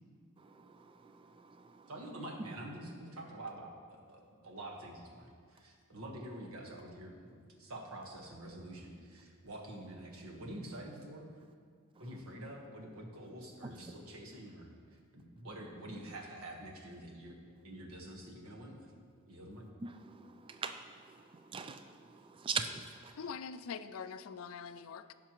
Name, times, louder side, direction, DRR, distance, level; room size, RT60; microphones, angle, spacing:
voice 1, 0.4-2.1 2.4-2.5 11.9-12.2 13.6-13.9 19.5-23.3, right 5 dB, 25° right, 0.3 m, -43 dB
voice 2, 1.9-11.3 12.0-14.7 15.1-18.9 19.3-19.7, right 1 dB, 85° right, 1.4 m, -47 dB
voice 3, 23.2-25.1, left 6 dB, 75° left, 0.4 m, -43 dB
15.0 x 5.8 x 3.0 m
head